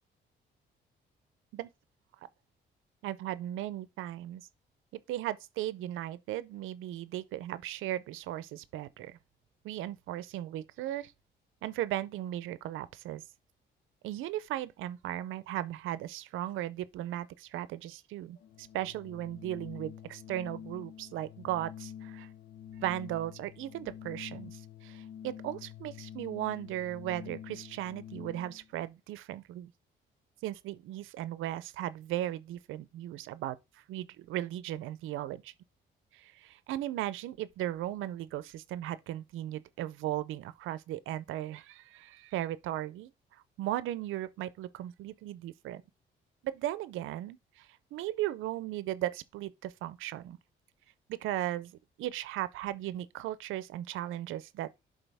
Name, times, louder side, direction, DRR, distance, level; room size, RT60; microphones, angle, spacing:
voice 1, 3.0-4.5 5.1-9.2 9.6-11.1 11.6-13.2 14.0-22.3 22.8-29.7 30.4-33.6 33.9-35.5 36.1-45.8 46.4-50.4 51.1-54.7, right 13 dB, 85° right, 0.6 m, -37 dB
Organ, 18.4-28.7, left 9 dB, 75° left, 0.6 m, -47 dB
11.0 x 3.9 x 3.4 m
cardioid pair, 90°, 20 cm